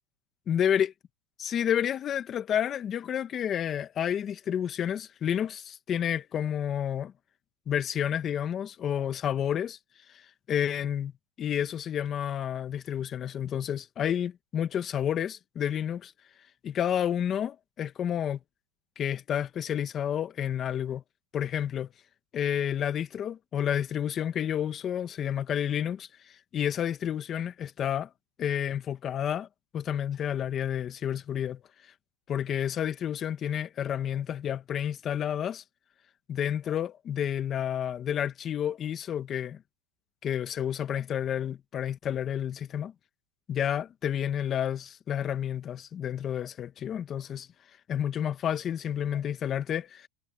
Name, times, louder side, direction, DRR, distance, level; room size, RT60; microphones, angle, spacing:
voice 1, 0.5-0.9 1.4-7.1 7.7-9.8 10.1-11.1 11.4-16.1 16.6-18.4 19.0-21.0 21.3-21.9 22.3-26.1 26.5-28.1 28.4-29.5 29.7-31.6 32.3-35.6 36.3-39.6 40.2-42.9 43.5-47.5 47.9-50.1, left 9 dB, 25° left, 1.6 m, -30 dB
supercardioid pair, 145°, 0 cm